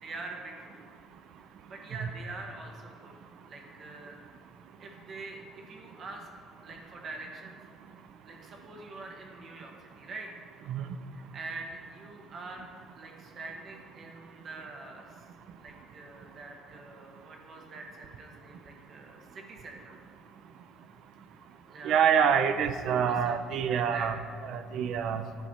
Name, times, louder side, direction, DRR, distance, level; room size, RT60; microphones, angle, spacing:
voice 1, 0.0-0.9 1.6-3.1 3.4-4.2 4.8-6.3 6.6-7.6 8.2-10.3 11.1-12.7 12.9-15.2 15.6-20.0 21.7-22.0 22.8-24.1, right 3 dB, 35° right, 1 dB, 1.3 m, -44 dB
voice 2, 21.8-24.2 24.4-25.2, right 7 dB, 60° right, 10 dB, 0.5 m, -26 dB
11.5 x 5.2 x 4.3 m, 2.2 s
cardioid pair, 145°, 0 cm